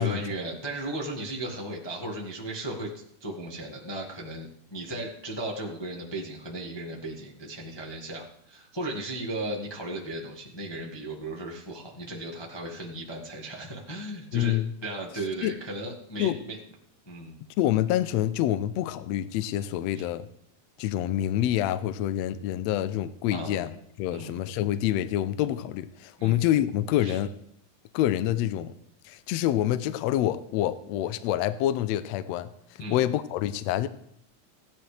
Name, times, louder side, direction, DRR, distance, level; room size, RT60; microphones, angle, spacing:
voice 1, 0.0-16.6 17.1-17.4 19.9-20.1 23.3-23.6 24.1-24.3 26.2-26.4 27.0-27.2 32.8-33.0, right 1 dB, 30° left, -2 dB, 0.4 m, -36 dB
voice 2, 14.3-14.7 15.4-15.5 16.2-16.4 17.6-20.3 20.8-27.3 27.9-28.7 29.0-32.5 32.9-33.9, left 12 dB, 80° left, 13 dB, 1.6 m, -27 dB
16.5 x 10.5 x 3.3 m, 0.69 s
omnidirectional pair, 3.6 m